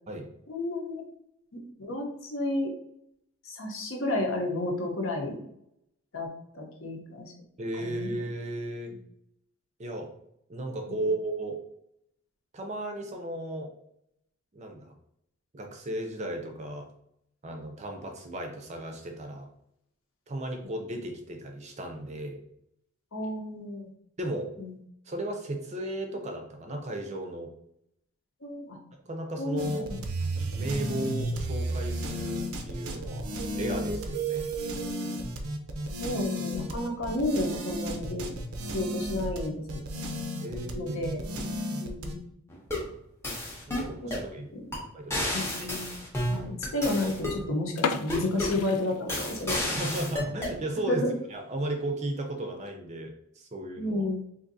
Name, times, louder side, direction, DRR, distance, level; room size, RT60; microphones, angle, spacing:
voice 1, 0.5-1.0 1.5-2.7 3.4-5.4 6.1-7.3 7.8-8.1 10.9-11.0 23.1-23.9 24.6-24.8 28.4-28.8 29.4-30.0 36.0-38.3 38.7-39.6 40.4-41.2 41.8-42.2 44.0-44.1 45.3-45.9 46.3-49.7 50.8-51.1 53.8-54.2, left 1 dB, 65° left, 2 dB, 0.8 m, -31 dB
voice 2, 7.6-8.9 9.8-10.1 10.5-11.6 12.5-13.7 14.5-14.9 15.5-16.9 17.4-19.5 20.3-22.4 24.2-24.5 25.1-27.5 29.0-29.9 30.5-34.5 40.4-41.5 43.7-44.5 44.9-45.7 49.6-51.0 51.3-54.1, right 1 dB, 30° right, 3 dB, 0.5 m, -35 dB
sound 1, 29.6-42.1, right 1 dB, 85° right, 0.5 m, -33 dB
sound 2, 42.5-42.9 43.2-44.3 44.7-44.8 45.1-47.4 48.1-48.6 49.1-50.6, left 1 dB, 10° left, 0.6 m, -31 dB
sound 3, 47.7-49.6 49.9-50.0 50.6-50.8 51.2-51.3 51.5-51.6 52.4-52.7, left 6 dB, 85° left, 0.4 m, -34 dB
3.7 x 2.6 x 2.6 m, 0.76 s
head